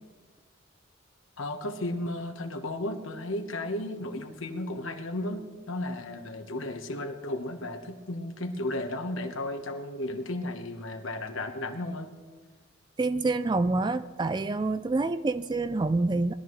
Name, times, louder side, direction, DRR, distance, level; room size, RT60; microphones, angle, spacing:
voice 1, 1.4-12.1, left 1 dB, 75° left, 6 dB, 1.2 m, -34 dB
voice 2, 13.0-16.3, right 3 dB, 20° right, 13 dB, 0.3 m, -27 dB
20.5 x 13.0 x 3.1 m, 1.4 s
head